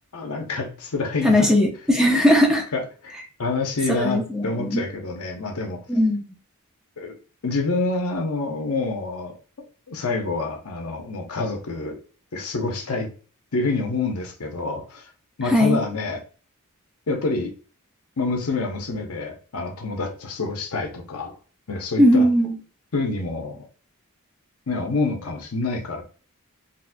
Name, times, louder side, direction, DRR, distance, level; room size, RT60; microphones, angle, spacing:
voice 1, 0.1-1.5 2.7-3.1 3.4-5.8 7.0-7.1 7.4-9.3 9.9-12.0 12.3-13.1 13.5-15.1 15.4-16.2 17.1-17.5 18.2-21.3 21.7-22.3 22.9-23.6 24.7-26.0, left 3 dB, 75° left, 3 dB, 0.8 m, -27 dB
voice 2, 1.2-2.6 3.9-4.8 5.9-6.3 15.5-15.8 22.0-22.6, equal, 5° right, 0 dB, 0.6 m, -18 dB
4.1 x 2.4 x 2.2 m, 0.38 s
head